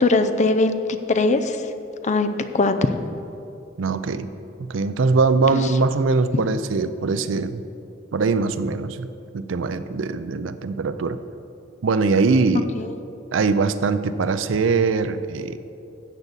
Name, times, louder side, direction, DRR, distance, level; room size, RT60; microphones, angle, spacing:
voice 1, 0.0-1.6 2.0-2.7 5.5-5.7 6.3-6.4 12.8-12.9, left 3 dB, 40° left, 9 dB, 0.5 m, -21 dB
voice 2, 3.8-4.3 4.6-7.6 8.1-9.1 9.3-11.2 11.8-12.7 13.3-15.6, right 4 dB, 75° right, 12 dB, 0.5 m, -22 dB
13.0 x 8.1 x 4.0 m, 2.7 s
head